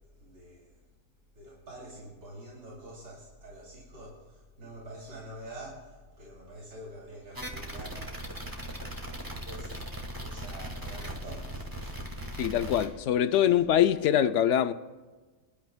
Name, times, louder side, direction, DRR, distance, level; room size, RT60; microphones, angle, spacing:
voice 1, 0.2-0.8 1.3-8.1 8.6-9.8 10.2-12.4, right 1 dB, 80° right, 3.2 m, -47 dB
sound 1, 7.3-12.9, equal, 15° right, 1.4 m, -39 dB
voice 2, 12.4-14.7, left 10 dB, 65° left, 0.8 m, -24 dB
24.5 x 12.0 x 2.2 m
omnidirectional pair, 1.5 m